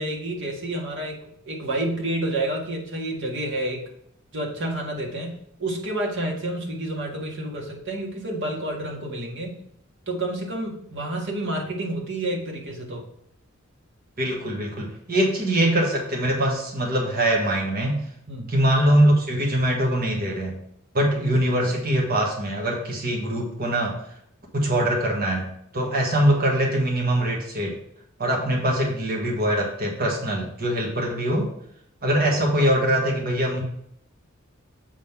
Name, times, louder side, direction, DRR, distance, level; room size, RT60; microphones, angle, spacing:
voice 1, 0.0-3.9 4.3-9.6 10.1-13.1 18.3-18.6, right 1 dB, 60° right, -1 dB, 1.8 m, -29 dB
voice 2, 14.2-18.0 18.5-20.6 20.9-24.0 24.5-27.8 28.2-31.5 32.0-33.6, right 1 dB, 45° right, -1 dB, 1.3 m, -23 dB
7.3 x 3.7 x 5.8 m, 0.71 s
head